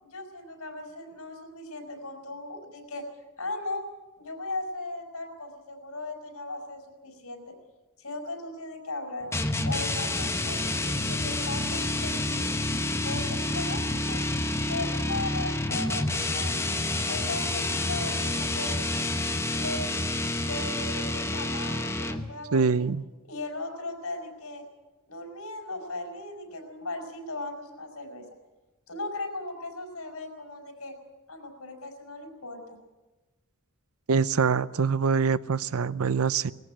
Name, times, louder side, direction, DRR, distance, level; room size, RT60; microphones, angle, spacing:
voice 1, 0.0-3.0 3.4-3.9 4.2-7.5 8.0-9.3 9.6-12.4 13.0-14.2 14.7-16.7 17.1-18.8 19.5-19.8 20.5-22.9 23.2-24.7 25.1-28.2 28.9-30.9 31.3-32.8, left 2 dB, 85° left, 4 dB, 4.9 m, -37 dB
sound 1, 9.3-22.4, left 2 dB, 10° left, 1.0 m, -29 dB
voice 2, 22.5-23.0 34.1-36.5, right 5 dB, 85° right, 17 dB, 0.6 m, -24 dB
19.0 x 14.5 x 10.0 m, 1.1 s
head